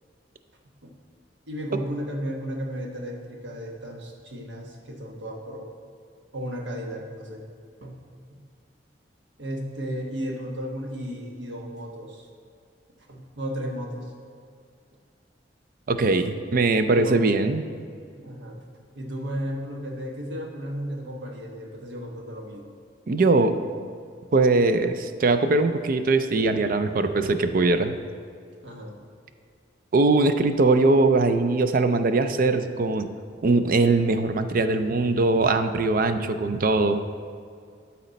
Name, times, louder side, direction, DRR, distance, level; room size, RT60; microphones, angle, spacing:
voice 1, 1.5-5.7 6.3-7.4 7.8-8.0 8.3-8.4 9.4-12.3 13.1-14.1 16.9-17.3 18.2-18.6 18.9-22.6 28.6-29.0, equal, 80° right, 1 dB, 1.3 m, -34 dB
voice 2, 15.9-17.6 23.1-23.6 24.3-27.9 29.9-33.1 33.4-37.0, right 3 dB, 50° right, 8 dB, 0.4 m, -21 dB
12.5 x 4.3 x 4.1 m, 2.3 s
head